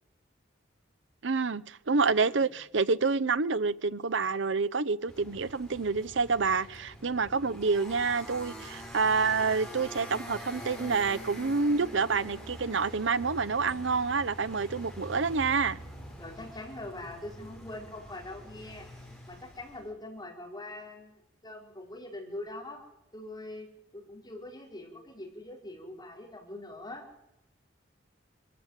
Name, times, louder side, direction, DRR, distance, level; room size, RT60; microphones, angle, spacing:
voice 1, 1.2-15.8, right 4 dB, 75° right, 0.8 m, -28 dB
sound 1, 5.1-19.9, equal, ahead, 5.1 m, -45 dB
voice 2, 16.2-18.9 19.2-22.8 23.1-23.7 23.9-27.1, left 1 dB, 20° left, 4.9 m, -43 dB
23.5 x 14.5 x 9.0 m
head